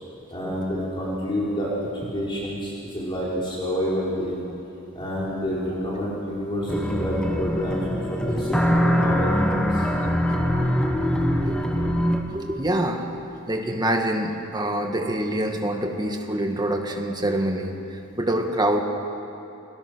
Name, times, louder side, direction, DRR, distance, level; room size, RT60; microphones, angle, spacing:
voice 1, 0.3-4.4 4.9-7.8 8.1-9.8, equal, 25° left, -6 dB, 4.1 m, -28 dB
sound 1, 6.7-12.2, equal, 5° left, 1.5 m, -23 dB
voice 2, 11.4-11.9 12.3-13.2 13.5-18.8, right 1 dB, 20° right, 3 dB, 1.8 m, -26 dB
29.5 x 19.5 x 6.3 m, 2.8 s
head